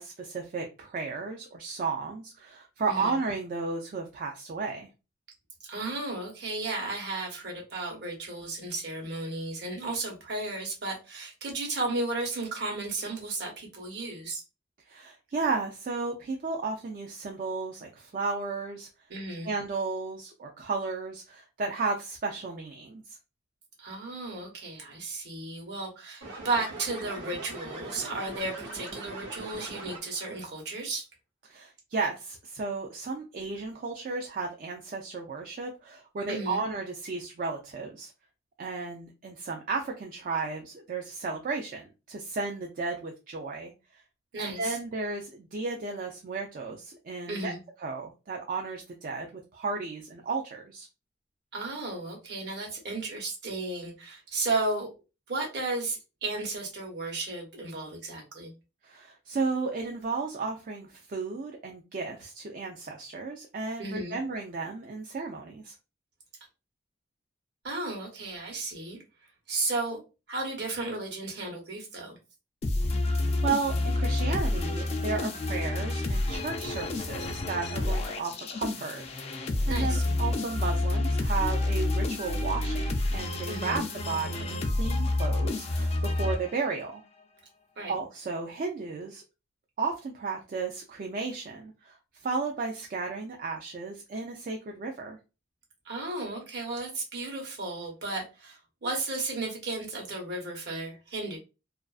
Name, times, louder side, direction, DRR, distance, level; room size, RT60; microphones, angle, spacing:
voice 1, 0.0-4.9 14.9-18.9 19.5-23.0 31.5-38.1 38.6-43.7 44.4-47.5 47.8-49.3 49.5-50.9 58.8-65.7 73.0-79.0 79.7-87.0 87.9-89.2 89.8-92.0 92.2-95.2, right 4 dB, 45° right, 1 dB, 0.3 m, -34 dB
voice 2, 2.9-3.2 5.7-14.4 19.1-19.5 23.8-31.0 36.3-36.6 44.3-44.8 47.3-47.6 51.5-54.9 55.3-58.5 63.8-64.2 67.6-69.0 69.5-70.0 70.3-72.2 79.7-80.0 83.5-83.9 87.8-87.9 95.8-101.4, right 2 dB, 60° right, 0 dB, 0.9 m, -34 dB
sound 1, 26.2-30.3, right 2 dB, 85° right, 1.0 m, -41 dB
sound 2, 72.6-86.9, left 2 dB, 35° left, 0.3 m, -29 dB
2.4 x 2.3 x 2.3 m, 0.29 s
head